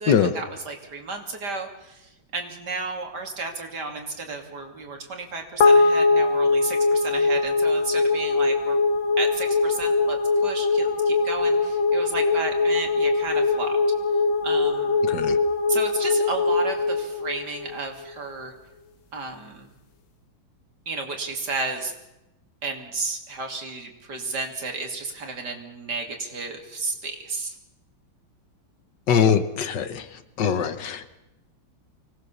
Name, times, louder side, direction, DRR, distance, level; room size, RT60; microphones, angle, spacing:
voice 1, 0.0-8.8 9.2-13.8 14.4-15.0 15.7-18.5 19.1-19.7 20.9-21.9 22.6-27.5, right 3 dB, 60° right, 3 dB, 3.3 m, -33 dB
sound 1, 5.6-18.1, left 3 dB, 90° left, 2.3 m, -22 dB
voice 2, 29.1-30.0 30.4-31.1, left 7 dB, 70° left, 12 dB, 1.7 m, -22 dB
24.5 x 18.5 x 7.1 m, 0.92 s
omnidirectional pair, 2.0 m